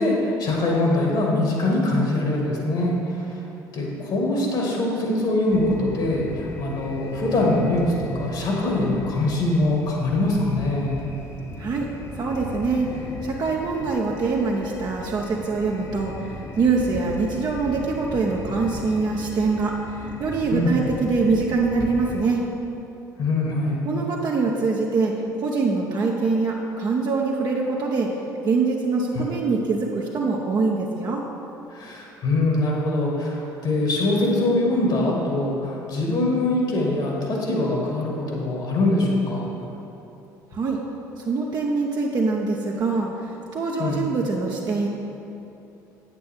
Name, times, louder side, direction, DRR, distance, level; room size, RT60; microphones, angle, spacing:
voice 1, 0.0-3.5 3.7-11.0 20.5-20.7 23.2-23.8 29.1-29.2 31.7-39.5 43.8-44.0, left 2 dB, 55° left, -2 dB, 2.1 m, -23 dB
sound 1, 5.5-22.2, left 2 dB, 30° left, 1.2 m, -38 dB
voice 2, 11.6-11.9 12.1-12.9 13.2-16.1 16.6-22.4 23.8-28.1 28.4-31.2 40.5-40.8 41.2-44.9, right 4 dB, 45° right, -2 dB, 0.9 m, -24 dB
8.7 x 8.3 x 3.7 m, 2.9 s
hypercardioid pair, 60°, 10 cm